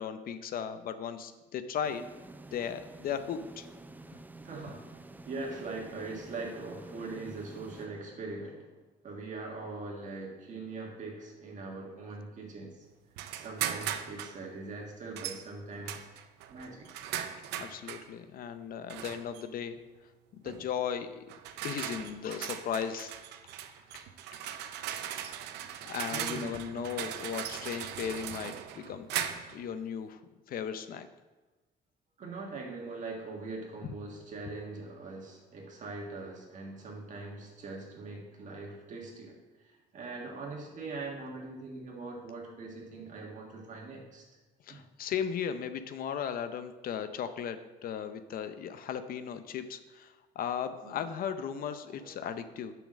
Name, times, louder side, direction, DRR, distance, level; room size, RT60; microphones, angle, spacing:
voice 1, 0.0-2.0 2.5-3.7 17.6-19.8 20.3-21.2 21.6-23.1 23.9-24.1 24.3-24.4 25.8-30.2 30.5-31.1 44.6-52.7, left 8 dB, 60° left, 11 dB, 0.6 m, -36 dB
sound 1, 1.8-8.6, right 2 dB, 10° right, 0.5 m, -50 dB
voice 2, 4.4-4.9 5.2-8.8 9.0-12.9 13.3-16.1 16.5-16.9 26.1-26.8 27.3-27.4 28.8-28.9 32.2-44.4 44.7-44.8 50.8-51.0 51.9-52.2, right 3 dB, 45° right, -2 dB, 1.8 m, -42 dB
sound 2, 13.2-14.4 15.2-15.4 15.9-18.1 18.9-19.4 20.5-20.7 21.3-29.6, right 10 dB, 90° right, 0.7 m, -38 dB
7.0 x 5.9 x 6.3 m, 1.2 s
cardioid pair, 110°, 17 cm